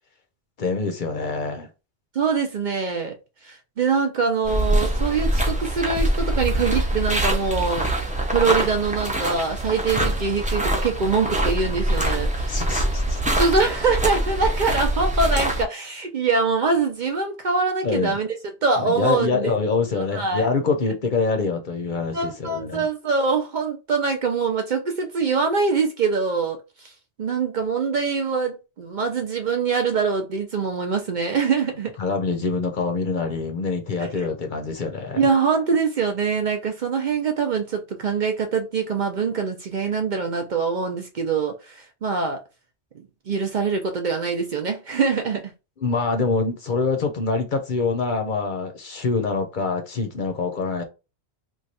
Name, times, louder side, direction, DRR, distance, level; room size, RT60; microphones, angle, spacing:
voice 1, 0.6-1.7 12.5-13.2 17.8-18.2 18.8-22.9 32.0-35.3 45.8-50.8, left 4 dB, 55° left, 0.8 m, -25 dB
voice 2, 2.1-3.2 3.4-7.9 8.3-12.6 13.4-18.3 18.6-19.5 20.0-20.5 22.1-26.9 27.2-31.9 34.2-34.3 35.2-42.4 43.0-45.5, right 4 dB, 55° right, 0.6 m, -24 dB
sound 1, 4.4-15.6, right 1 dB, 10° right, 0.4 m, -24 dB
3.1 x 2.3 x 4.1 m
omnidirectional pair, 1.1 m